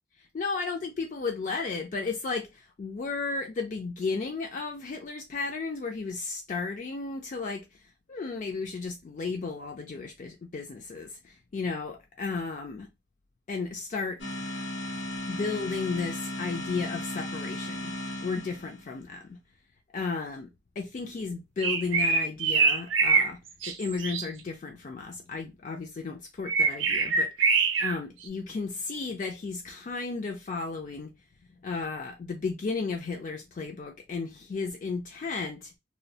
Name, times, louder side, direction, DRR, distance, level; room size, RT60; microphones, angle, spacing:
voice 1, 0.2-7.8 8.1-12.9 13.5-14.3 15.3-17.9 18.2-19.4 19.9-23.4 23.7-27.3 27.8-31.1 31.6-35.7, left 4 dB, 40° left, 0.3 m, -34 dB
sound 1, 14.2-18.9, left 1 dB, 80° left, 0.9 m, -36 dB
sound 2, 21.6-23.3 23.6-24.3 26.5-28.0, right 4 dB, 90° right, 0.5 m, -24 dB
2.3 x 2.1 x 2.7 m
head